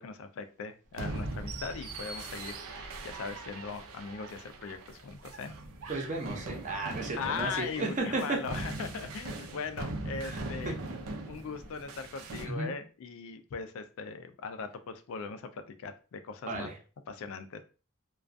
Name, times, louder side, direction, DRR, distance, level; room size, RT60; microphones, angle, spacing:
voice 1, 0.0-5.5 7.2-10.7 11.3-16.7 17.1-17.6, left 5 dB, 70° left, 8 dB, 0.3 m, -39 dB
sound 1, 0.9-12.5, right 2 dB, 90° right, 0.5 m, -40 dB
voice 2, 5.9-8.4 10.2-10.7 12.4-12.7 16.5-16.7, right 3 dB, 35° right, 2 dB, 0.6 m, -34 dB
2.3 x 2.2 x 2.5 m, 0.35 s
head